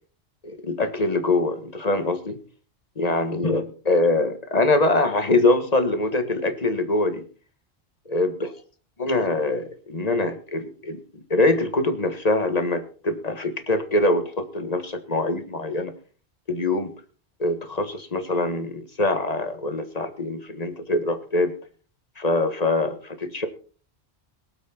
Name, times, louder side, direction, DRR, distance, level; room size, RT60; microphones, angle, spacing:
voice 1, 0.4-2.4 3.0-7.2 8.1-8.5 9.0-15.9 16.5-16.9 17.4-21.5 22.2-23.5, left 2 dB, 35° left, 8 dB, 1.7 m, -24 dB
22.5 x 7.8 x 4.4 m, 0.40 s
omnidirectional pair, 1.1 m